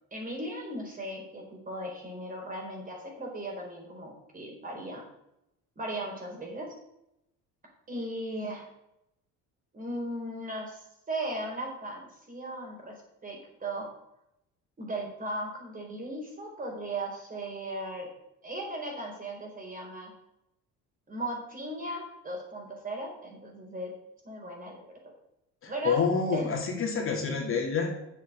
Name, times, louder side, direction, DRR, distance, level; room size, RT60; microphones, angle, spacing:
voice 1, 0.1-5.0 5.8-6.7 7.9-8.7 9.7-12.9 13.2-13.9 14.8-18.1 18.4-20.1 21.1-23.9 24.2-25.1 25.7-26.0 26.3-26.5, right 1 dB, 25° right, 0 dB, 4.4 m, -37 dB
voice 2, 25.6-27.9, left 5 dB, 45° left, 1 dB, 2.5 m, -28 dB
8.1 x 7.4 x 6.7 m, 0.84 s
cardioid pair, 120°, 30 cm